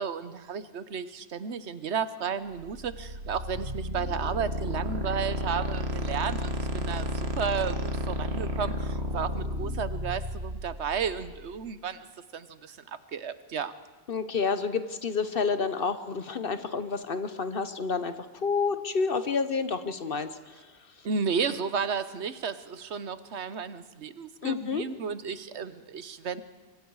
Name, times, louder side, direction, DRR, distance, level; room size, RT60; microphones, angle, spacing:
voice 1, 0.0-12.1 12.3-13.7 21.0-26.4, right 6 dB, 85° right, 13 dB, 1.2 m, -33 dB
sound 1, 2.6-11.5, equal, 70° right, 2.0 m, -32 dB
voice 2, 14.1-20.5 24.4-24.8, left 5 dB, 60° left, 11 dB, 1.1 m, -29 dB
25.5 x 24.0 x 4.8 m, 1.3 s
omnidirectional pair, 1.1 m